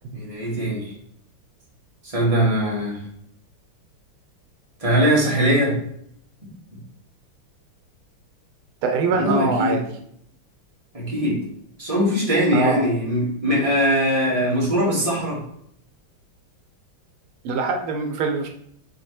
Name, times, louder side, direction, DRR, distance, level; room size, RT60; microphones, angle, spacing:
voice 1, 0.1-0.9 2.0-3.0 4.8-5.8 9.1-9.8 10.9-11.4 11.8-15.4, equal, 15° right, -6 dB, 1.9 m, -21 dB
voice 2, 8.8-9.8 12.5-12.8 17.4-18.5, right 4 dB, 80° right, 4 dB, 1.6 m, -23 dB
7.6 x 3.9 x 3.3 m, 0.69 s
omnidirectional pair, 2.3 m